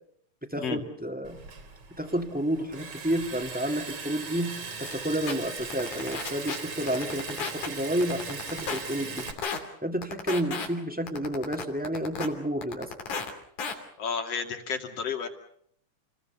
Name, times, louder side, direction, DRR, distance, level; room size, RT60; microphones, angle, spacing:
voice 1, 0.5-1.4 2.0-9.3 9.8-12.9, right 1 dB, 5° right, 5 dB, 1.8 m, -30 dB
Liquid, 1.2-9.3, right 4 dB, 50° right, 3.9 m, -39 dB
sound 1, 4.8-4.9 5.3-5.4 5.7-6.6 6.9-7.7 8.0-8.8 9.2-9.6 10.0-10.7 11.1-12.3 12.6-13.3 13.6-13.7, left 5 dB, 85° left, 4.6 m, -33 dB
voice 2, 14.0-15.3, left 6 dB, 55° left, 5 dB, 3.5 m, -31 dB
29.0 x 21.0 x 6.9 m, 0.66 s
omnidirectional pair, 3.3 m